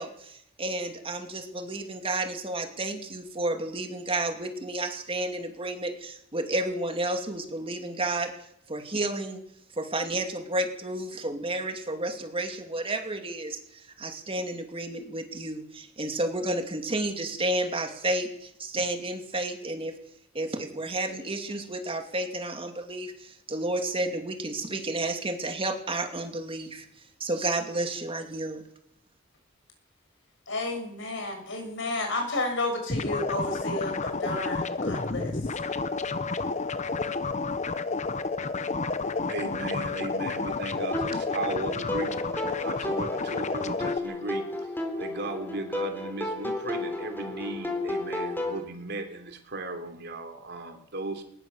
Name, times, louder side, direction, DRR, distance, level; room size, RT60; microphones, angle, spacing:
voice 1, 0.0-8.3 8.7-9.4 9.8-19.9 20.3-26.8 27.2-28.6, right 2 dB, 30° right, 5 dB, 2.6 m, -31 dB
voice 2, 30.5-35.4, left 2 dB, 65° left, 4 dB, 7.3 m, -32 dB
sound 1, 32.9-44.0, left 4 dB, 35° left, 1.0 m, -30 dB
voice 3, 39.3-44.7 45.0-51.2, right 2 dB, 55° right, 6 dB, 3.4 m, -36 dB
sound 2, 40.9-48.6, left 2 dB, 10° left, 4.0 m, -33 dB
21.0 x 20.0 x 7.2 m, 0.73 s
head